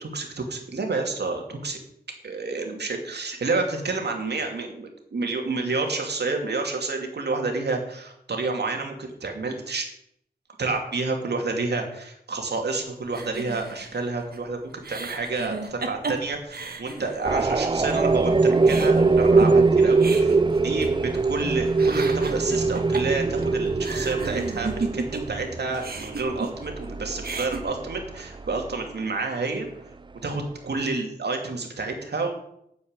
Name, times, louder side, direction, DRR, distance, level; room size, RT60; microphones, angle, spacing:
voice 1, 0.0-1.8 2.2-9.9 10.6-29.7 30.2-32.3, right 3 dB, 90° right, 3 dB, 2.6 m, -29 dB
sound 1, 13.1-17.5 17.9-18.0 18.3-21.4 21.7-25.4 25.7-26.9 27.1-27.6, right 3 dB, 70° right, 1.7 m, -35 dB
sound 2, 17.2-28.9, right 3 dB, 30° right, 0.5 m, -22 dB
9.7 x 7.6 x 8.9 m, 0.74 s
wide cardioid pair, 100°, 17 cm